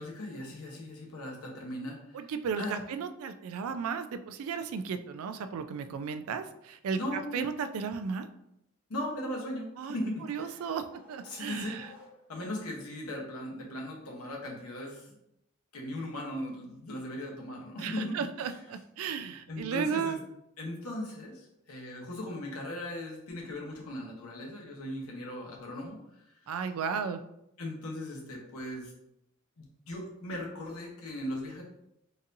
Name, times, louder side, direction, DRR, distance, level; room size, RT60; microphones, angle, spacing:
voice 1, 0.0-2.3 2.6-2.8 6.9-7.6 8.9-10.6 11.2-11.8 12.3-15.2 15.7-18.2 18.4-18.5 19.5-20.2 20.6-26.0 26.3-26.4 27.6-28.9 29.6-31.6, left 1 dB, 85° left, -1 dB, 0.9 m, -38 dB
voice 2, 2.1-8.3 9.8-10.0 10.3-11.9 17.8-20.2 26.5-27.2, right 6 dB, 70° right, 11 dB, 0.3 m, -34 dB
sound 1, 9.6-12.6, left 1 dB, 10° right, 0.5 m, -57 dB
4.0 x 2.6 x 2.6 m, 0.80 s
head